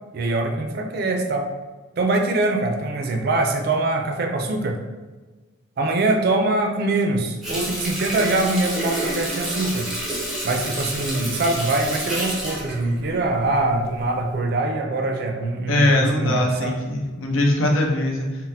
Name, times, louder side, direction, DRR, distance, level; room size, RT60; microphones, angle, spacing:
voice 1, 0.1-1.5 2.0-4.8 5.8-9.9 10.4-16.7, right 2 dB, 50° right, 3 dB, 0.4 m, -23 dB
Water tap faucet, 7.4-13.8 14.2-14.4, right 1 dB, ahead, 0.6 m, -29 dB
voice 2, 15.7-18.5, left 1 dB, 80° left, 0 dB, 0.6 m, -21 dB
4.0 x 2.0 x 2.6 m, 1.3 s
head